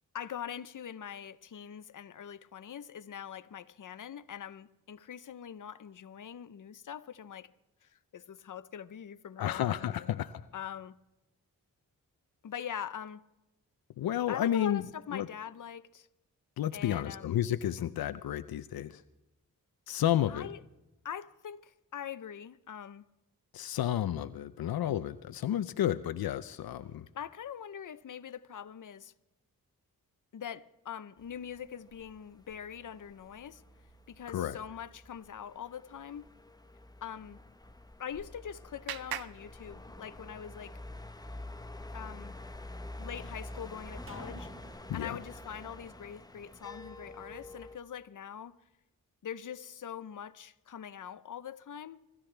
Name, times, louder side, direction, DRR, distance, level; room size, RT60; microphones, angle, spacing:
voice 1, 0.1-7.5 7.8-10.1 10.5-11.0 12.4-13.2 14.3-16.1 16.7-17.4 17.8-17.9 20.3-20.6 21.0-23.0 27.1-29.1 30.3-33.6 34.1-36.3 37.0-37.4 38.0-40.8 41.9-42.4 43.0-44.5 44.9-48.6 49.2-52.0, left 8 dB, 60° left, 0.8 m, -43 dB
voice 2, 9.4-10.4 14.0-14.8 15.1-15.3 16.6-19.0 19.9-20.5 23.5-27.1 34.3-34.6 44.9-45.2, left 11 dB, 90° left, 0.6 m, -31 dB
sound 1, 31.2-47.8, left 1 dB, 10° left, 0.9 m, -47 dB
Clapping, 37.8-40.4, right 11 dB, 90° right, 0.6 m, -44 dB
sound 2, 44.1-47.4 47.7-47.8, right 3 dB, 35° right, 1.9 m, -55 dB
26.0 x 13.5 x 3.4 m
cardioid pair, 65°, 35 cm